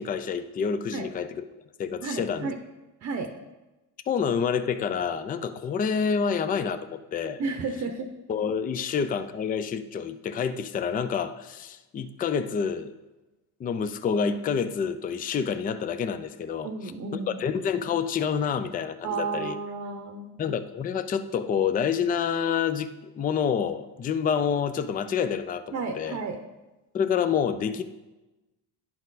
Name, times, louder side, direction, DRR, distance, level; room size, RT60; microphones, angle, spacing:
voice 1, 0.0-1.3 1.8-2.5 4.1-7.4 8.3-12.9 13.6-16.7 17.1-19.6 20.4-26.2 26.9-27.8, left 7 dB, 20° left, 11 dB, 0.4 m, -28 dB
voice 2, 2.0-2.6 3.0-3.3 7.4-8.1 16.6-17.5 19.0-20.3 25.7-26.4, right 4 dB, 40° right, 5 dB, 0.8 m, -32 dB
11.0 x 4.3 x 4.0 m, 1.1 s
cardioid pair, 105°, 41 cm